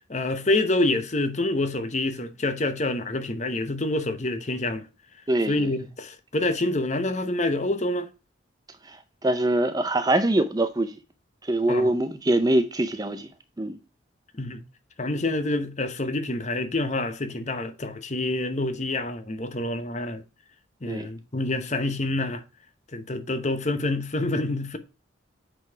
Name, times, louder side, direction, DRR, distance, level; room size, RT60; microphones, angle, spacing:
voice 1, 0.1-4.9 5.5-8.1 11.7-11.9 14.4-14.6 15.0-20.2 20.8-22.4 22.9-24.8, left 2 dB, 35° left, 0.9 m, -27 dB
voice 2, 5.3-5.7 8.9-9.0 9.2-11.0 11.5-13.3 13.6-13.8 20.9-21.1, right 1 dB, 20° right, 0.5 m, -23 dB
8.0 x 4.1 x 4.6 m
head